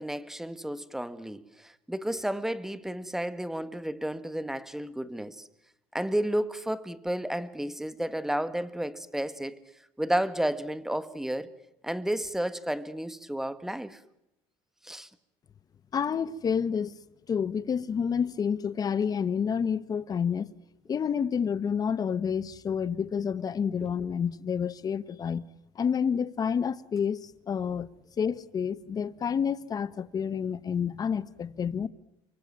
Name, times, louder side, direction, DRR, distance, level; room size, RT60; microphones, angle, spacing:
voice 1, 0.0-5.5 5.9-9.6 10.0-11.5 11.8-14.0 14.8-15.1 23.8-23.9, right 1 dB, 5° right, 1.7 m, -32 dB
voice 2, 15.9-17.0 17.3-20.5 20.9-25.4 25.7-27.9 28.2-31.9, left 7 dB, 30° left, 1.3 m, -29 dB
29.5 x 24.5 x 7.6 m
cardioid pair, 120°, 12 cm